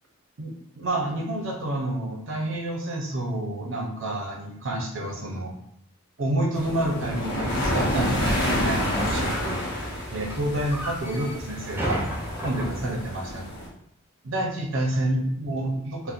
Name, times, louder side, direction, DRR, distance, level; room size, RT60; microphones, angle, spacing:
voice 1, 0.4-5.5 6.2-9.6 10.1-12.0 12.4-13.4 14.2-16.1, right 1 dB, 65° right, 1 dB, 0.7 m, -29 dB
sound 1, 6.5-13.7, left 1 dB, 50° left, 0.8 m, -29 dB
sound 2, 7.9-12.9, equal, 10° right, 0.5 m, -34 dB
4.1 x 2.1 x 2.4 m, 0.69 s
head